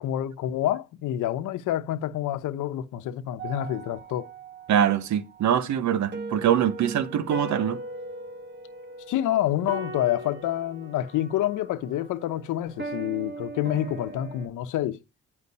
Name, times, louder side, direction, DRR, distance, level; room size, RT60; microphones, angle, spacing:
voice 1, 0.0-4.3 9.1-15.0, left 12 dB, 85° left, 0.9 m, -28 dB
sound 1, 3.4-14.5, right 2 dB, 35° right, 1.6 m, -39 dB
voice 2, 4.7-7.8, right 9 dB, 70° right, 1.1 m, -23 dB
9.8 x 5.1 x 5.4 m
cardioid pair, 90°, 30 cm